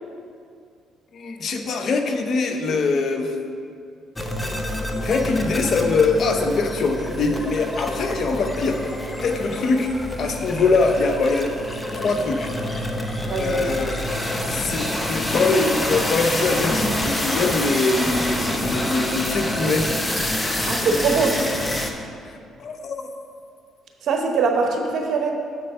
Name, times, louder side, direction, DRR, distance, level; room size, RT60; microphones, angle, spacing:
voice 1, 1.1-3.3 5.0-9.0 9.2-9.9 10.2-11.5 11.9-12.5 13.4-13.9 14.5-19.9 22.3-23.0, left 3 dB, 55° left, 6 dB, 0.7 m, -23 dB
sound 1, 4.2-21.9, left 1 dB, 15° left, 0.7 m, -27 dB
voice 2, 13.2-13.7 20.7-21.5 24.1-25.3, right 4 dB, 65° right, 3 dB, 0.9 m, -22 dB
6.7 x 4.3 x 6.6 m, 2.3 s
supercardioid pair, 70°, 0 cm